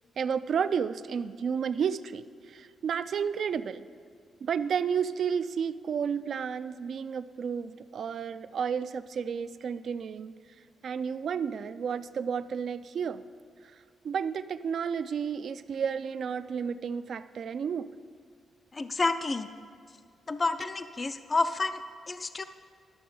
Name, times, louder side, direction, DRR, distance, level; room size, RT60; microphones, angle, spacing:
voice 1, 0.2-3.9 4.4-10.4 10.8-13.2 14.0-17.9, right 7 dB, 60° right, 13 dB, 0.4 m, -31 dB
voice 2, 18.7-19.5 20.3-22.4, left 3 dB, 30° left, 10 dB, 0.4 m, -30 dB
12.0 x 6.7 x 5.4 m, 2.1 s
cardioid pair, 115°, 0 cm